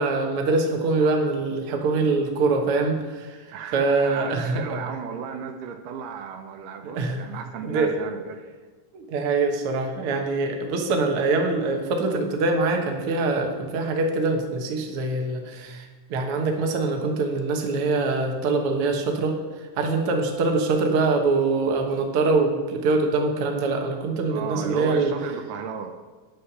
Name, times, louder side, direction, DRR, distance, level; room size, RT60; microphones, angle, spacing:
voice 1, 0.0-3.4 3.7-4.6 6.9-7.2 7.6-8.0 8.9-19.4 19.8-25.1, right 3 dB, 55° right, 3 dB, 1.7 m, -24 dB
voice 2, 3.5-8.4 24.3-26.0, right 6 dB, 80° right, 6 dB, 2.3 m, -34 dB
9.8 x 6.4 x 7.2 m, 1.4 s
omnidirectional pair, 3.8 m